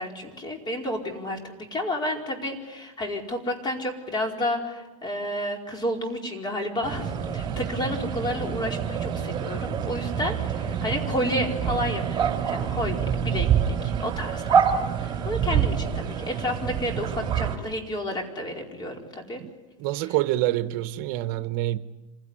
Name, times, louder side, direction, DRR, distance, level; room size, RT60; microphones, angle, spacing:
voice 1, 0.0-13.0 13.2-14.6 15.0-19.4, left 1 dB, 25° left, 4.7 m, -31 dB
sound 1, 6.8-17.6, right 7 dB, 25° right, 3.7 m, -27 dB
voice 2, 19.8-21.8, right 15 dB, 60° right, 0.9 m, -26 dB
26.5 x 16.5 x 9.8 m
supercardioid pair, 115°, 17 cm